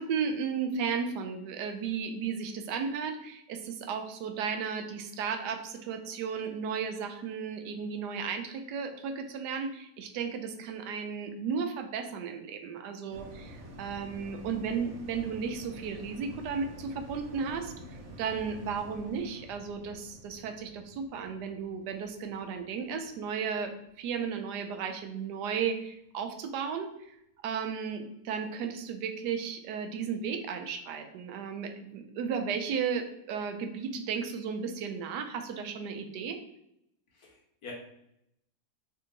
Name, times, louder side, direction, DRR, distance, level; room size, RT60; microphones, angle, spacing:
voice 1, 0.0-23.7 24.0-27.2 27.4-36.4, right 6 dB, 90° right, 6 dB, 1.2 m, -34 dB
sound 1, 13.1-23.8 24.2-24.3, equal, 60° right, 0.9 m, -48 dB
voice 2, 37.1-37.7, left 4 dB, 65° left, -1 dB, 1.5 m, -47 dB
3.4 x 2.8 x 3.8 m, 0.78 s
omnidirectional pair, 1.7 m